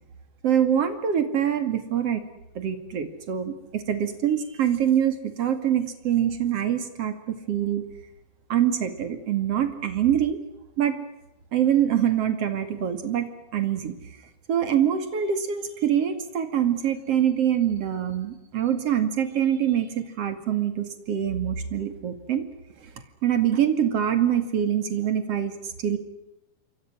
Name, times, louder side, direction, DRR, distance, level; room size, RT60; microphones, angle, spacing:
voice 1, 0.4-2.2 2.5-7.8 8.5-10.4 10.8-11.0 11.5-13.9 14.5-22.5 22.8-22.9 23.2-26.0, right 9 dB, 40° right, 8 dB, 2.6 m, -24 dB
28.5 x 24.5 x 6.3 m, 0.90 s
omnidirectional pair, 5.3 m